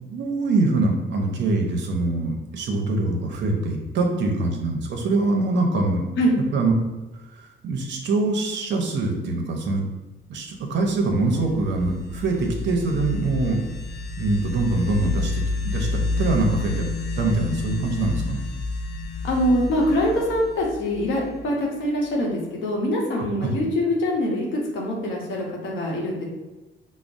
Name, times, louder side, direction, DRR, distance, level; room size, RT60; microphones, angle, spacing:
voice 1, 0.1-6.1 6.5-6.7 7.4-9.8 10.3-13.6 14.2-16.8 17.2-18.4 23.4-23.5, right 2 dB, 65° right, 1 dB, 0.7 m, -24 dB
sound 1, 11.1-21.6, left 3 dB, 55° left, 0.8 m, -30 dB
voice 2, 19.2-26.3, equal, 85° left, -1 dB, 0.9 m, -24 dB
4.8 x 2.0 x 2.5 m, 1.1 s
cardioid pair, 90°, 20 cm